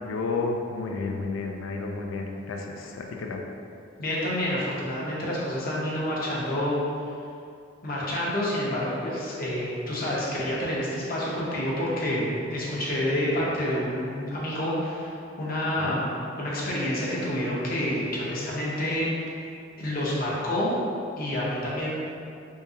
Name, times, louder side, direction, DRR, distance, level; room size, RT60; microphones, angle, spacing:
voice 1, 0.1-3.4 15.8-16.0, left 3 dB, 85° left, 2 dB, 0.4 m, -31 dB
voice 2, 4.0-6.8 7.8-16.1 16.4-19.1 19.8-20.7 21.2-22.0, left 1 dB, 50° left, -6 dB, 0.8 m, -28 dB
3.6 x 2.8 x 2.7 m, 2.5 s
head